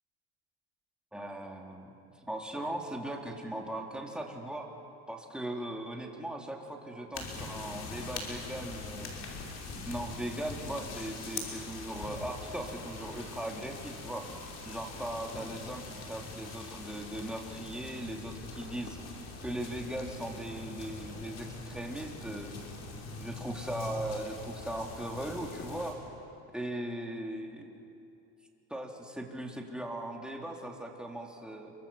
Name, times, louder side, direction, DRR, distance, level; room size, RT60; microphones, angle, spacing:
voice 1, 1.1-1.9 2.3-4.7 5.1-9.1 9.8-14.3 14.6-19.0 19.4-22.5 23.2-26.0 26.5-27.7 28.7-31.7, right 1 dB, 5° right, 0 dB, 3.5 m, -39 dB
sound 1, 7.1-25.9, left 3 dB, 50° left, 5.6 m, -43 dB
27.5 x 24.5 x 7.3 m, 2.7 s
supercardioid pair, 105°, 33 cm